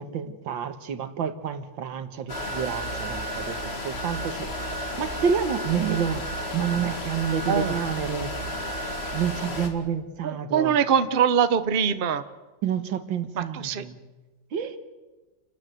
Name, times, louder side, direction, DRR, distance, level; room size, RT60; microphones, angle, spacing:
voice 1, 0.0-3.6 3.8-4.5 5.0-6.2 6.5-8.3 9.1-10.8 12.6-14.0 14.5-14.8, right 7 dB, 80° right, 10 dB, 2.1 m, -29 dB
sound 1, 2.3-9.7, equal, 35° left, 2.4 m, -32 dB
voice 2, 10.2-12.2 13.4-13.9, right 7 dB, 40° right, 12 dB, 0.8 m, -23 dB
28.5 x 12.5 x 9.3 m, 1.2 s
omnidirectional pair, 2.1 m